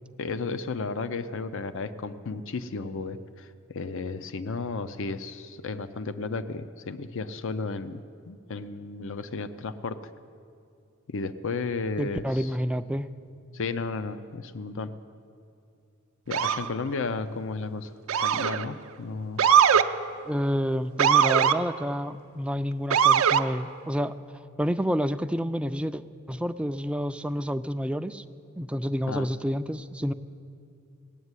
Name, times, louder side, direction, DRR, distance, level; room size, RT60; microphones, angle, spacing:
voice 1, 0.2-10.1 11.1-12.5 13.5-14.9 16.3-17.9 18.2-19.4 29.1-29.3, left 4 dB, 65° left, 12 dB, 0.6 m, -33 dB
voice 2, 12.0-13.1 20.2-24.1 24.6-28.2 28.6-30.1, equal, 5° right, 10 dB, 0.3 m, -29 dB
Motor vehicle (road) / Siren, 16.3-16.7 18.1-18.6 19.4-19.9 21.0-21.6 22.9-23.4, right 8 dB, 75° right, 0.5 m, -20 dB
17.5 x 8.1 x 9.6 m, 2.5 s
head